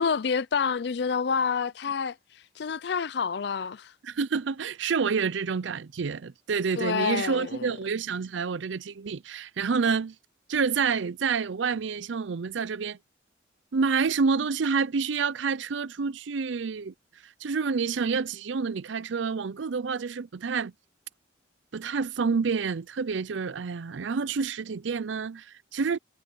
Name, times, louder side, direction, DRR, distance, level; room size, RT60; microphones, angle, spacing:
voice 1, 0.0-2.2 2.6-3.9 6.8-7.7, left 6 dB, 60° left, 0.5 m, -28 dB
voice 2, 4.0-10.1 10.5-13.0 13.7-16.9 17.2-20.7 21.7-26.0, right 5 dB, 75° right, 0.5 m, -28 dB
head